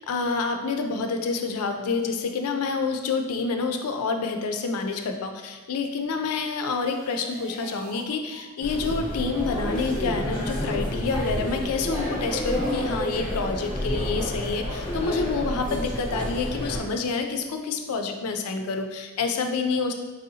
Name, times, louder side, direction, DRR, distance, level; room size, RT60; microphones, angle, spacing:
voice 1, 0.0-19.9, left 4 dB, 90° left, 5 dB, 0.4 m, -28 dB
sound 1, 6.0-8.0 8.3-8.4 8.7-8.8 9.1-9.2 9.5-9.6 9.9-10.0 10.3-10.4 10.7-10.8 11.1-11.2, right 2 dB, 40° right, 0.4 m, -48 dB
sound 2, 8.6-16.8, equal, 25° left, 0.8 m, -29 dB
4.1 x 2.7 x 2.7 m, 1.4 s
head